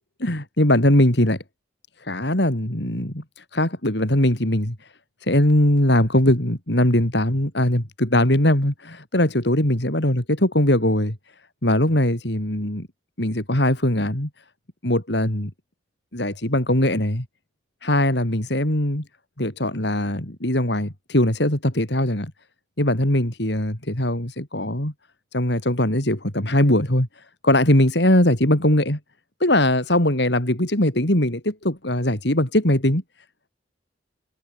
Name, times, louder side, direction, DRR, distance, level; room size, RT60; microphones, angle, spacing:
voice 1, 0.2-1.4 2.0-4.8 5.2-11.2 11.6-12.9 13.2-14.3 14.8-15.5 16.1-17.3 17.8-19.0 19.4-22.3 22.8-24.9 25.3-29.0 29.4-33.0, left 1 dB, 65° left, 3.9 m, -21 dB
head